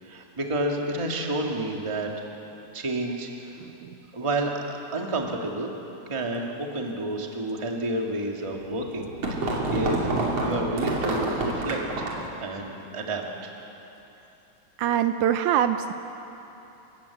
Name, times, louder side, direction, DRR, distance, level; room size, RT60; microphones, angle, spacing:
voice 1, 0.0-2.1 2.7-3.5 4.1-5.7 6.1-10.1 10.4-12.1 12.4-13.5, right 2 dB, 15° right, 1 dB, 1.4 m, -30 dB
voice 2, 3.6-4.0 14.8-15.9, right 10 dB, 75° right, 9 dB, 2.0 m, -24 dB
sound 1, 8.6-12.3, right 2 dB, 50° right, 3.8 m, -27 dB
29.0 x 15.0 x 8.4 m, 3.0 s
omnidirectional pair, 3.6 m